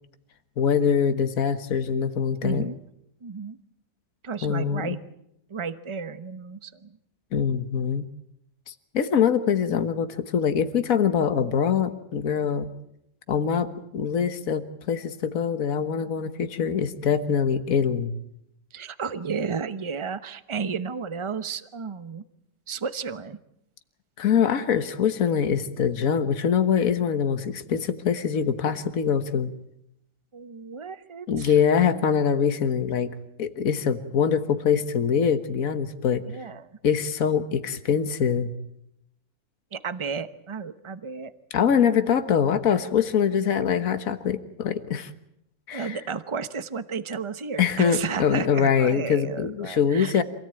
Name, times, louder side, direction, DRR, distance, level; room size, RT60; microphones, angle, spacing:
voice 1, 0.6-2.7 4.4-5.0 7.3-8.1 8.7-12.7 13.3-18.1 24.2-29.5 31.3-36.3 36.8-38.5 41.5-45.1 45.7-46.0 47.6-50.2, left 7 dB, 60° left, 10 dB, 1.8 m, -24 dB
voice 2, 2.4-2.8 3.2-3.6 4.2-5.1 5.5-7.0 18.7-22.2 22.7-23.4 30.3-31.6 36.3-36.8 39.7-41.3 45.7-50.2, right 5 dB, 25° right, 13 dB, 0.8 m, -33 dB
26.5 x 17.5 x 9.0 m, 0.79 s
omnidirectional pair, 1.6 m